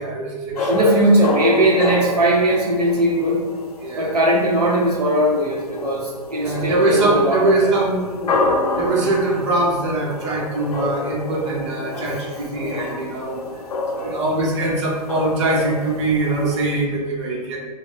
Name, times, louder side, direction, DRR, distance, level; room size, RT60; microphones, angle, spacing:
voice 1, 0.0-0.9 3.8-4.2 6.4-8.3 8.7-13.4 13.9-17.6, right 2 dB, 45° right, -3 dB, 1.0 m, -22 dB
sound 1, 0.6-16.9, left 2 dB, 75° left, 0.5 m, -29 dB
voice 2, 0.7-3.4 4.0-7.7, right 1 dB, 85° right, -3 dB, 0.8 m, -19 dB
5.0 x 2.3 x 2.4 m, 1.4 s
figure-of-eight pair, 120°, 20 cm